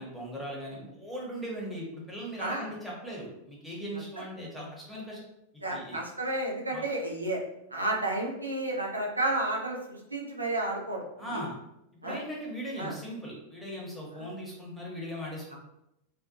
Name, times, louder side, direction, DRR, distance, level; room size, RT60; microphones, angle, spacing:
voice 1, 0.0-5.2 5.5-6.0 6.7-6.8 11.2-11.5 12.0-15.6, equal, 5° left, -4 dB, 0.8 m, -39 dB
voice 2, 5.6-7.4 7.7-11.4 12.0-12.2 12.8-13.0 14.1-14.3, right 2 dB, 80° right, -2 dB, 0.5 m, -32 dB
2.5 x 2.2 x 2.5 m, 0.84 s
figure-of-eight pair, 90°, 0 cm